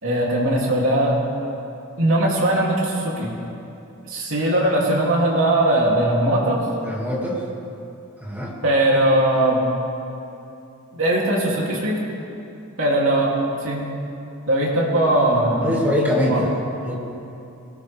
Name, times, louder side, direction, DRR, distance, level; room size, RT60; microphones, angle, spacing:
voice 1, 0.0-1.2 2.0-3.3 4.1-6.6 8.6-9.6 10.9-12.0 12.8-13.3 13.6-13.9 14.5-15.9 16.2-16.4, right 1 dB, 65° right, -3 dB, 3.2 m, -20 dB
voice 2, 6.8-7.4 8.2-8.5 15.6-16.9, left 1 dB, 10° right, -4 dB, 2.5 m, -23 dB
22.0 x 18.5 x 3.6 m, 2.8 s
head